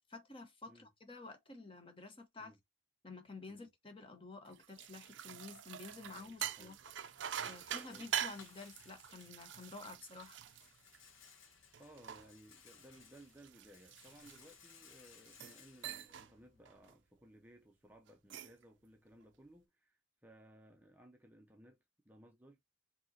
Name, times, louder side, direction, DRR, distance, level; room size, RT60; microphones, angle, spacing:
voice 1, 0.1-2.5 3.0-6.7 7.4-10.4, left 3 dB, 25° left, 0.9 m, -51 dB
sound 1, 4.5-11.3 11.7-14.8 15.3-15.6 15.8-16.3 16.7-16.9 18.1-18.6, right 9 dB, 65° right, 0.4 m, -45 dB
Rattle, 5.9-16.9, left 6 dB, 80° left, 1.0 m, -63 dB
voice 2, 11.8-21.8 22.0-22.6, right 1 dB, 10° right, 0.5 m, -60 dB
5.2 x 2.8 x 2.6 m
head